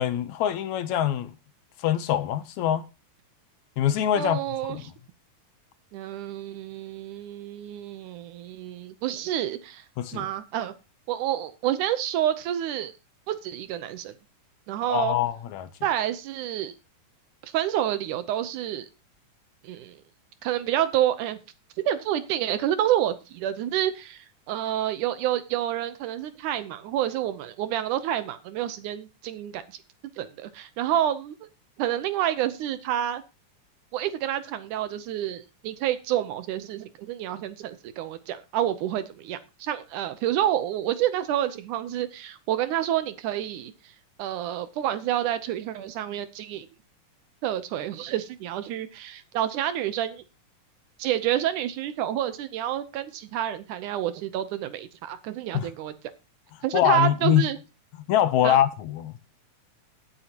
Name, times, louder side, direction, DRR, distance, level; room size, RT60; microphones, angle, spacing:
voice 1, 0.0-1.3 1.8-2.8 3.8-4.4 4.7-4.8 10.0-10.3 14.9-15.7 55.5-55.7 56.7-57.4 58.1-59.2, left 11 dB, 75° left, 1.9 m, -23 dB
voice 2, 4.2-4.8 5.9-9.8 10.1-10.7 11.1-12.9 13.3-14.1 14.7-15.2 15.8-16.7 17.4-18.9 19.6-20.0 20.4-21.4 21.9-29.6 30.2-31.4 31.8-33.2 33.9-43.7 44.2-46.7 47.4-50.2 51.0-55.9 56.6-57.6 58.4-58.6, right 11 dB, 80° right, 2.2 m, -28 dB
17.0 x 8.1 x 2.9 m
omnidirectional pair, 3.6 m